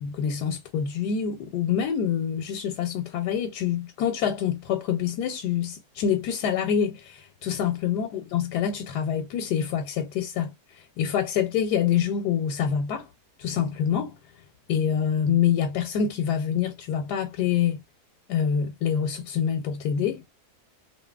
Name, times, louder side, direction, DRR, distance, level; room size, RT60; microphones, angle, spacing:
voice 1, 0.0-10.5 11.0-13.1 13.4-14.2 14.7-17.8 18.3-20.3, left 8 dB, 85° left, 1.2 m, -26 dB
2.7 x 2.6 x 2.2 m
omnidirectional pair, 1.7 m